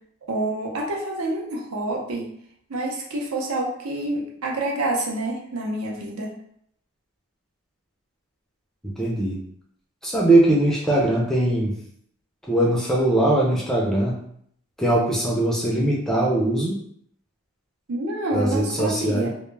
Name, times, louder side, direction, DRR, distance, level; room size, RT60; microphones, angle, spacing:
voice 1, 0.3-2.3 2.7-6.3 17.9-19.3, right 1 dB, 80° right, -1 dB, 0.6 m, -27 dB
voice 2, 8.8-9.4 10.0-11.7 12.5-14.2 14.8-16.8 18.3-19.3, right 1 dB, ahead, -4 dB, 0.3 m, -21 dB
2.1 x 2.0 x 3.1 m, 0.68 s
head